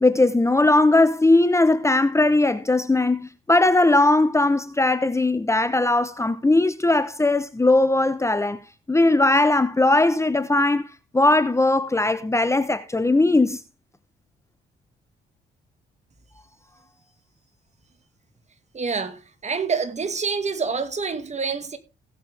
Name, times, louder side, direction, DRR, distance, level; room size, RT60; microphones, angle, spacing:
voice 1, 0.0-8.6 8.9-10.9 11.1-13.6, left 2 dB, 15° left, 0.9 m, -19 dB
voice 2, 18.7-21.8, right 5 dB, 35° right, 2.1 m, -27 dB
17.5 x 7.7 x 3.5 m
cardioid pair, 90°, 20 cm